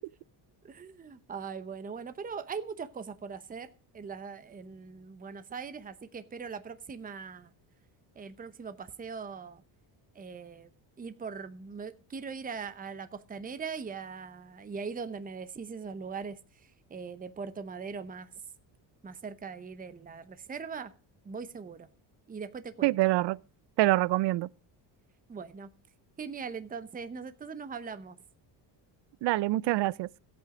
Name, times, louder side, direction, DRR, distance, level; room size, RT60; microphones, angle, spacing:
voice 1, 0.6-7.5 8.2-9.6 10.1-10.7 11.0-18.3 19.0-20.9 21.2-21.9 22.3-22.9 25.3-25.7 26.2-28.2, right 5 dB, 20° right, 0.8 m, -41 dB
voice 2, 22.8-23.4 23.8-24.5 29.2-30.1, right 18 dB, 65° right, 0.6 m, -25 dB
14.5 x 8.5 x 5.0 m
cardioid pair, 125°, 45 cm